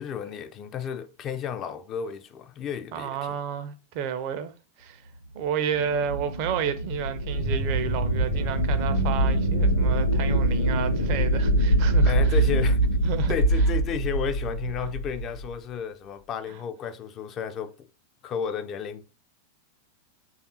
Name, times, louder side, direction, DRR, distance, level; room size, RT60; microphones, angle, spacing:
voice 1, 0.0-3.4 12.1-12.8 13.3-17.9 18.2-19.1, left 7 dB, 30° left, 0.3 m, -33 dB
voice 2, 2.9-4.5 4.8-5.0 5.3-12.3 13.0-13.7, right 8 dB, 45° right, 0.4 m, -31 dB
sound 1, 5.5-15.6, right 1 dB, 80° left, 0.5 m, -24 dB
sound 2, 7.3-13.4, right 1 dB, 55° left, 0.8 m, -33 dB
3.3 x 2.4 x 2.8 m
figure-of-eight pair, 90°, 0 cm